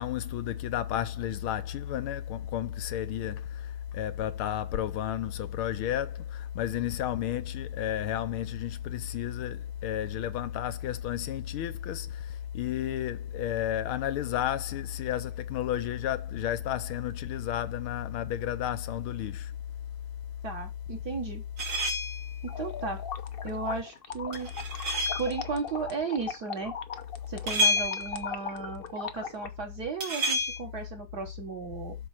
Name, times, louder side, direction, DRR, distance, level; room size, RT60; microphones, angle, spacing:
voice 1, 0.0-19.5, left 11 dB, 85° left, 1.6 m, -32 dB
voice 2, 20.4-21.4 22.4-23.0 23.4-24.5 25.2-26.7 27.3-32.0, right 4 dB, 50° right, 1.9 m, -35 dB
sound 1, 21.6-22.3 24.3-25.4 27.5-28.3 30.0-30.6, left 1 dB, 70° right, 3.5 m, -29 dB
sound 2, 22.5-29.5, left 6 dB, 65° left, 0.5 m, -39 dB
7.8 x 4.6 x 5.8 m
omnidirectional pair, 2.3 m